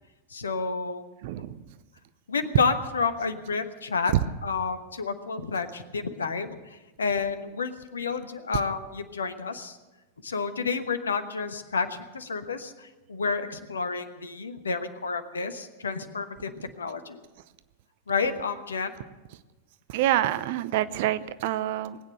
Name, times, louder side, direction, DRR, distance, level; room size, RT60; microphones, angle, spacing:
voice 1, 0.3-1.0 2.3-4.1 4.4-9.8 10.2-17.2 18.1-18.9, left 4 dB, 70° left, 10 dB, 1.1 m, -30 dB
voice 2, 1.2-1.6 19.9-22.0, right 13 dB, 50° right, 15 dB, 0.6 m, -27 dB
20.0 x 9.0 x 7.8 m, 1.2 s
figure-of-eight pair, 90°, 0 cm